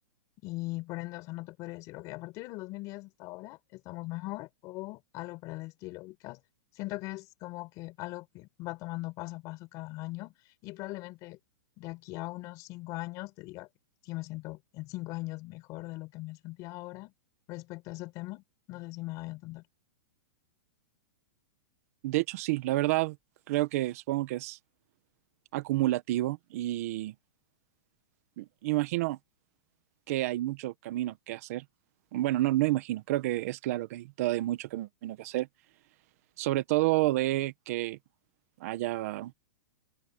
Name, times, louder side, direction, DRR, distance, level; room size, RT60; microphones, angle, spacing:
voice 1, 0.4-6.4 6.7-10.3 10.6-11.4 11.8-13.7 14.0-17.1 17.5-19.6, left 21 dB, 30° left, 6.6 m, -40 dB
voice 2, 22.0-23.2 23.5-24.6 25.5-27.1 28.4-29.2 30.1-31.6 32.1-35.5 36.4-38.0 38.6-39.3, right 17 dB, 45° right, 1.4 m, -29 dB
open air
supercardioid pair, 160°, 11 cm